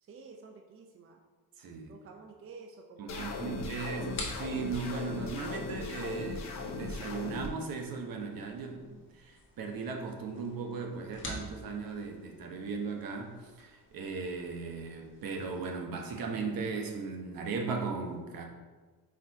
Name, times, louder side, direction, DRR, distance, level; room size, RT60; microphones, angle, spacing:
voice 1, 0.0-1.2 1.9-4.2, right 4 dB, 40° right, 2 dB, 0.5 m, -50 dB
voice 2, 1.6-1.9 3.0-4.1 4.4-18.5, right 4 dB, 70° right, 2 dB, 1.1 m, -37 dB
sound 1, 3.1-7.5, left 3 dB, 50° left, 0.8 m, -38 dB
sound 2, 4.1-15.7, left 2 dB, 35° left, 1.1 m, -49 dB
4.9 x 4.4 x 4.6 m, 1.3 s
wide cardioid pair, 170°, 36 cm